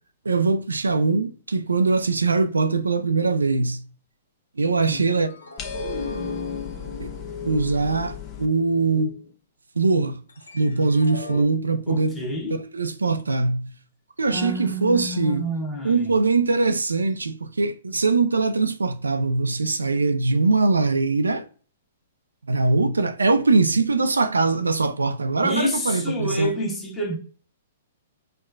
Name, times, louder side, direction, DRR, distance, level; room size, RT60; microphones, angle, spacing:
voice 1, 0.3-3.8 4.6-5.3 7.0-7.1 7.4-9.2 9.8-10.2 10.5-12.1 12.7-13.7 14.2-15.4 15.8-21.4 22.5-26.5, right 3 dB, 90° right, 0.3 m, -22 dB
sound 1, 5.0-9.3 10.3-11.4, left 3 dB, 85° left, 0.7 m, -36 dB
sound 2, 5.6-8.5, left 10 dB, 25° left, 0.8 m, -38 dB
voice 2, 11.9-12.6 14.3-16.2 25.4-27.1, equal, 10° left, 1.2 m, -28 dB
4.5 x 2.2 x 2.4 m
hypercardioid pair, 120°, 0 cm